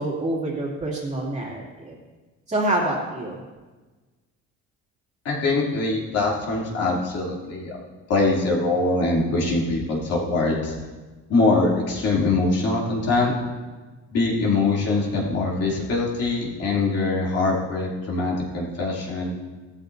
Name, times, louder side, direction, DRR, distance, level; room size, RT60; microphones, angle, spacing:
voice 1, 0.0-2.0 2.5-3.4, right 1 dB, 20° right, -4 dB, 2.6 m, -26 dB
voice 2, 5.2-7.8 8.1-10.7 11.3-13.3 14.1-19.4, left 3 dB, 55° left, -4 dB, 3.0 m, -23 dB
16.5 x 13.0 x 2.7 m, 1.3 s
cardioid pair, 155°, 30 cm